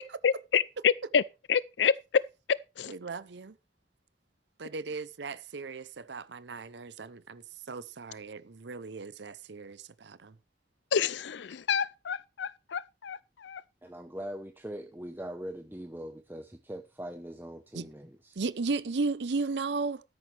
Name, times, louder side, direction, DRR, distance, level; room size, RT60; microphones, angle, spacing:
voice 1, 0.2-1.2 1.5-1.9 2.8-2.9 10.9-13.6, left 7 dB, 80° left, 0.5 m, -28 dB
voice 2, 2.9-3.5 4.6-10.3 17.7-17.9 18.4-20.0, right 4 dB, 70° right, 0.7 m, -35 dB
voice 3, 13.8-18.4, equal, 10° right, 0.9 m, -41 dB
13.0 x 10.5 x 3.3 m
head